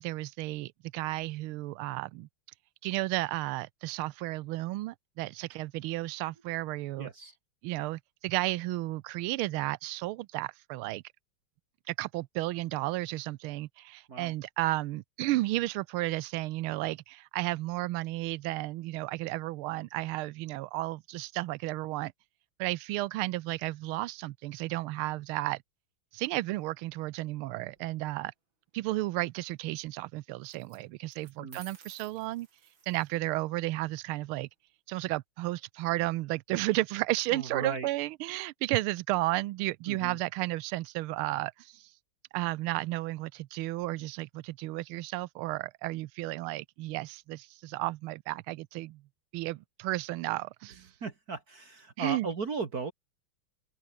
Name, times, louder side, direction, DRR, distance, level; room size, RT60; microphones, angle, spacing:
voice 1, 0.0-2.3 2.8-7.1 7.6-11.0 11.9-22.1 22.6-25.6 26.1-28.3 28.7-32.5 32.9-34.5 34.9-41.9 42.3-49.0 49.3-50.9 52.0-52.3, right 18 dB, 85° right, 1.5 m, -33 dB
voice 2, 7.0-7.4 14.1-14.3 31.4-31.6 37.3-37.9 39.9-40.2 51.0-52.9, right 4 dB, 45° right, 2.3 m, -36 dB
sound 1, 27.6-28.1 30.4-30.8 31.1-33.2, right 5 dB, 65° right, 3.9 m, -54 dB
omnidirectional pair, 2.3 m